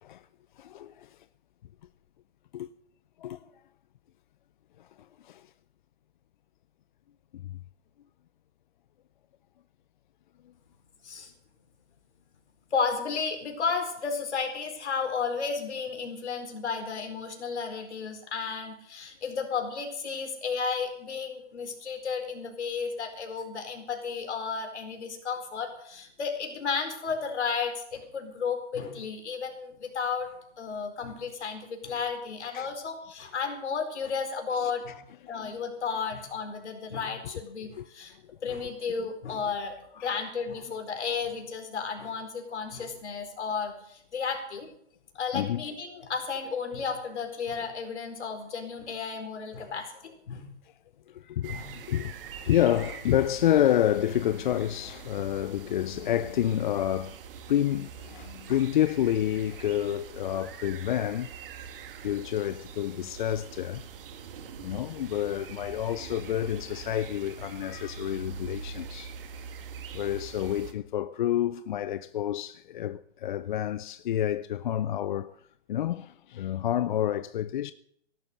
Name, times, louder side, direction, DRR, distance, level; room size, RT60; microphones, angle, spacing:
voice 1, 0.6-1.2 2.5-2.7 3.2-3.5 4.8-4.9 5.2-5.5 7.3-7.6 32.5-32.7 34.6-34.7 35.3-35.5 37.8-38.2 40.0-40.2 45.3-45.6 51.1-52.1 52.4-57.2 57.5-61.3 62.0-63.8 64.6-69.1 69.9-75.4 75.7-77.7, left 11 dB, 45° left, 0.5 m, -29 dB
voice 2, 12.7-35.0 35.3-38.1 38.4-39.7 40.0-44.7 45.1-50.5 51.5-51.7, left 5 dB, 70° left, 4.5 m, -33 dB
sound 1, 51.4-70.7, right 6 dB, 50° right, 2.1 m, -43 dB
17.0 x 12.0 x 6.7 m
hypercardioid pair, 145°, 35 cm